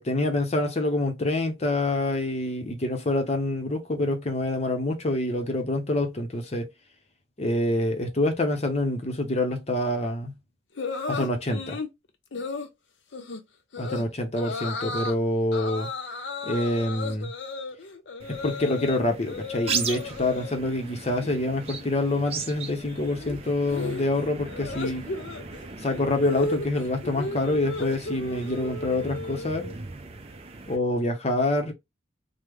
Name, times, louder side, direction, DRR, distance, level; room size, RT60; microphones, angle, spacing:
voice 1, 0.0-6.7 7.4-10.4 11.1-11.8 13.8-15.9 16.4-17.3 18.3-25.1 25.8-29.6 30.7-31.7, left 1 dB, 35° left, 0.6 m, -26 dB
sound 1, 10.8-11.9 12.3-12.7 13.1-13.4 13.7-14.0 14.4-15.2 15.5-19.0 19.3-20.6 20.9-21.3 21.6-29.7, left 3 dB, 80° left, 0.6 m, -35 dB
sound 2, 18.2-30.8, right 5 dB, 35° right, 0.5 m, -38 dB
3.2 x 2.0 x 3.5 m
head